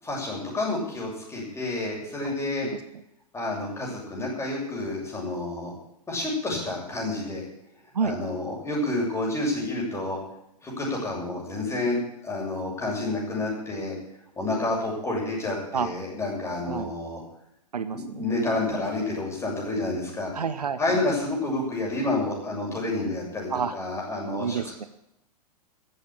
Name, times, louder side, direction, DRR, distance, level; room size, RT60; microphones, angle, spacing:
voice 1, 0.0-2.7 3.3-5.7 6.1-7.4 8.0-10.2 10.6-12.0 12.2-14.0 14.4-17.2 18.2-20.3 20.8-24.6, left 2 dB, 15° left, -3 dB, 7.2 m, -29 dB
voice 2, 17.7-18.2 20.3-21.0 23.5-23.7 24.4-24.8, right 6 dB, 70° right, 11 dB, 1.0 m, -29 dB
14.5 x 8.9 x 9.0 m, 0.80 s
figure-of-eight pair, 100°, 21 cm